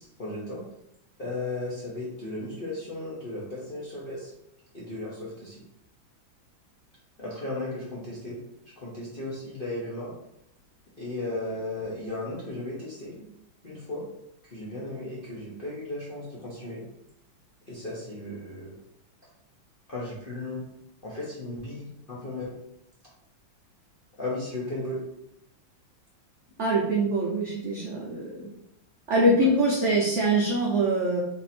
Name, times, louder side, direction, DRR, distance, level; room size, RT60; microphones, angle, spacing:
voice 1, 0.2-0.6 1.2-4.3 4.7-5.6 7.2-8.4 8.8-10.1 11.0-13.3 13.6-14.0 14.5-16.8 17.7-18.7 19.9-20.6 21.0-22.5 24.2-25.0 29.4-29.5, left 2 dB, 60° left, -7 dB, 0.5 m, -35 dB
voice 2, 26.6-28.5 29.1-31.2, right 1 dB, 90° right, -3 dB, 0.6 m, -24 dB
3.6 x 2.7 x 4.2 m, 0.82 s
omnidirectional pair, 2.2 m